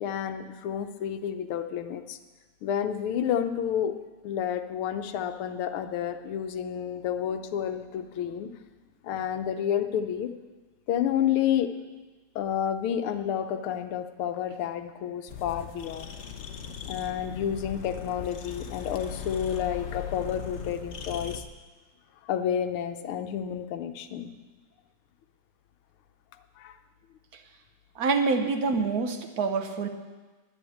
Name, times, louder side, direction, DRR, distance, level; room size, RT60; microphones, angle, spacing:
voice 1, 0.0-2.2 2.6-3.9 4.2-8.5 9.0-10.3 10.9-11.7 12.3-16.2 16.8-21.4 22.3-24.3 26.6-26.8, left 9 dB, 80° left, 8 dB, 1.7 m, -30 dB
sound 1, 15.3-21.4, left 7 dB, 55° left, 0.7 m, -39 dB
voice 2, 27.9-29.9, right 4 dB, 55° right, 7 dB, 1.3 m, -26 dB
10.5 x 10.0 x 8.5 m, 1.3 s
omnidirectional pair, 2.4 m